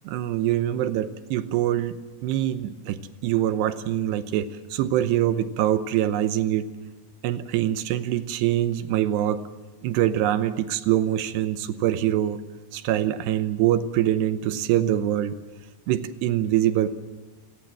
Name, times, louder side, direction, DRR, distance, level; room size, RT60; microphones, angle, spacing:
voice 1, 0.0-6.7 7.2-9.4 9.8-12.4 12.7-15.4 15.9-16.9, right 12 dB, 80° right, 11 dB, 2.9 m, -24 dB
27.5 x 18.0 x 7.4 m, 1.2 s
omnidirectional pair, 5.0 m